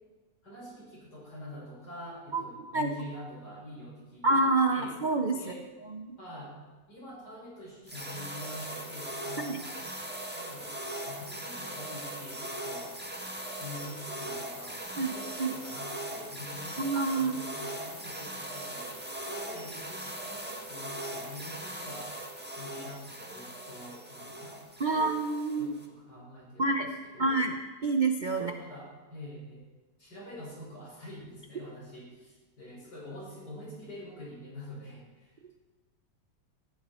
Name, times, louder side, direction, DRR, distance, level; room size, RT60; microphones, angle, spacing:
voice 1, 0.4-4.4 4.7-4.9 5.3-5.7 6.2-6.6 6.9-9.8 10.3-10.8 11.1-12.9 13.6-16.8 17.1-18.9 19.3-22.1 22.6-24.6 24.9-25.2 25.6-27.4 28.3-29.6 30.0-35.5, left 1 dB, 60° left, -4 dB, 6.5 m, -46 dB
voice 2, 4.2-5.4 5.9-6.2 9.4-9.6 15.0-15.1 15.4-15.5 16.8-17.4 24.8-25.8 26.6-26.9 27.2-28.5, right 3 dB, 40° right, 5 dB, 0.7 m, -27 dB
sound 1, 7.9-25.9, right 1 dB, 5° right, 1.5 m, -40 dB
18.5 x 14.5 x 4.4 m, 1.3 s
omnidirectional pair, 1.9 m